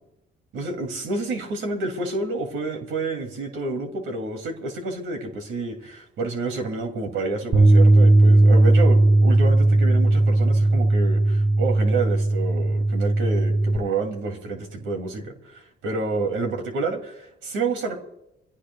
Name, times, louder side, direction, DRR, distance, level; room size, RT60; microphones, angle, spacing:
voice 1, 0.5-18.0, right 3 dB, 85° right, 4 dB, 2.6 m, -29 dB
Bass guitar, 7.5-13.8, right 2 dB, 30° right, 2.4 m, -17 dB
26.5 x 16.5 x 2.3 m, 0.85 s
cardioid pair, 90°, 20 cm